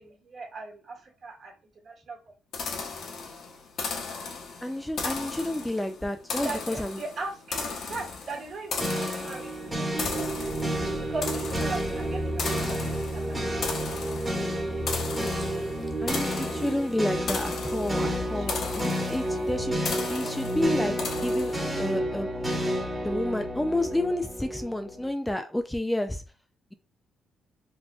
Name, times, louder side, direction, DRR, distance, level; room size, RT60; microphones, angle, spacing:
voice 1, 0.0-2.3 6.3-13.7 18.3-18.8 20.0-20.4, right 3 dB, 55° right, 0 dB, 1.7 m, -40 dB
sound 1, 2.5-21.9, left 4 dB, 65° left, 1.0 m, -36 dB
voice 2, 4.6-7.0 15.4-15.6 16.0-21.0 21.2-22.3 23.0-26.2, left 1 dB, 5° left, 6 dB, 0.3 m, -30 dB
sound 2, 8.8-25.1, right 1 dB, 15° right, 1.4 m, -30 dB
4.1 x 2.9 x 2.3 m, 0.34 s
cardioid pair, 90°, 0 cm